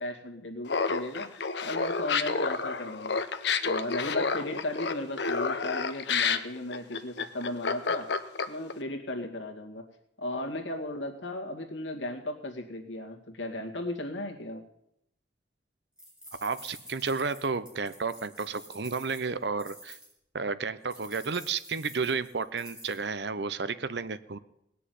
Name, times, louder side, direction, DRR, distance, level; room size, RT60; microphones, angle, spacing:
voice 1, 0.0-3.2 3.6-8.1 8.5-9.9 10.2-14.6, left 1 dB, 90° left, 1 dB, 2.2 m, -36 dB
Laughter, 0.7-8.7, left 5 dB, 65° left, 0.9 m, -29 dB
sound 1, 16.0-20.1 20.9-23.0, equal, 5° right, 5.3 m, -49 dB
voice 2, 16.4-20.0 20.3-24.4, right 4 dB, 65° right, 14 dB, 0.7 m, -32 dB
18.5 x 6.8 x 9.4 m, 0.80 s
head